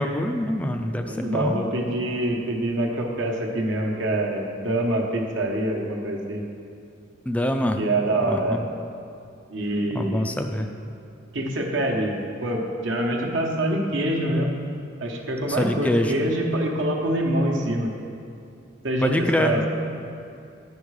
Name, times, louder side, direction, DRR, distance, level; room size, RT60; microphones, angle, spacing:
voice 1, 0.0-1.6 7.3-7.8 8.3-8.4 9.9-10.7 15.6-16.1 19.0-19.5, left 1 dB, 5° left, 5 dB, 0.3 m, -24 dB
voice 2, 1.0-6.4 7.8-8.6 9.5-10.3 11.3-14.5 15.0-17.9 18.8-19.6, right 1 dB, 75° right, 0 dB, 1.0 m, -25 dB
10.0 x 5.3 x 4.7 m, 2.5 s
head